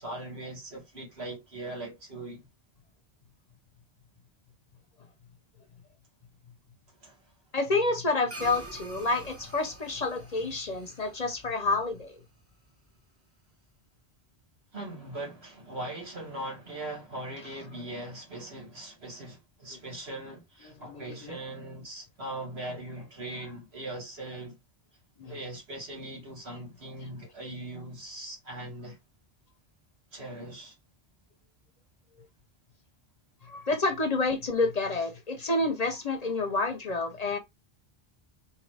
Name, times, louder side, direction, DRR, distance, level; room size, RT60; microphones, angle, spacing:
voice 1, 0.0-2.5 7.0-7.2 14.7-24.6 25.2-29.0 30.1-30.8, right 1 dB, 85° right, 2.3 m, -40 dB
voice 2, 7.5-12.2 20.6-21.4 25.2-25.3 33.4-37.4, left 3 dB, 45° left, 0.6 m, -29 dB
sound 1, 8.3-12.9, right 1 dB, 15° right, 0.8 m, -47 dB
3.7 x 2.8 x 3.2 m
omnidirectional pair, 1.1 m